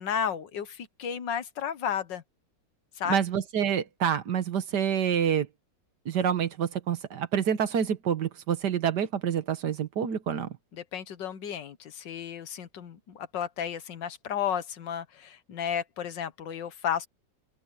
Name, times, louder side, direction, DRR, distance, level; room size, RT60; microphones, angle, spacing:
voice 1, 0.0-2.2 3.0-3.2 10.9-17.1, left 8 dB, 80° left, 1.9 m, -33 dB
voice 2, 3.1-5.5 6.1-10.5, right 8 dB, 70° right, 1.8 m, -27 dB
open air
omnidirectional pair, 1.9 m